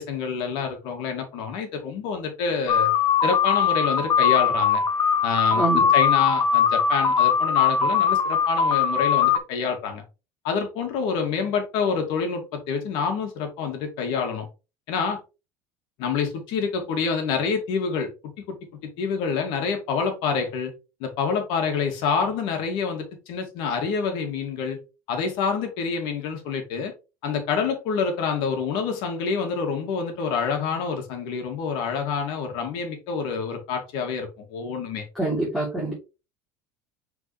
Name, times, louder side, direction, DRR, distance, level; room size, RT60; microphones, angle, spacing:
voice 1, 0.0-2.9 3.2-4.8 5.2-10.0 10.4-14.5 14.9-15.2 16.0-18.6 18.8-20.7 21.0-24.8 25.1-26.9 27.2-35.1, left 5 dB, 65° left, 4 dB, 2.4 m, -27 dB
sound 1, 2.7-9.4, left 7 dB, 40° left, 1.2 m, -20 dB
voice 2, 5.5-5.9 35.1-35.9, right 2 dB, ahead, -6 dB, 3.2 m, -25 dB
6.5 x 4.5 x 3.3 m, 0.29 s
supercardioid pair, 125°, 9 cm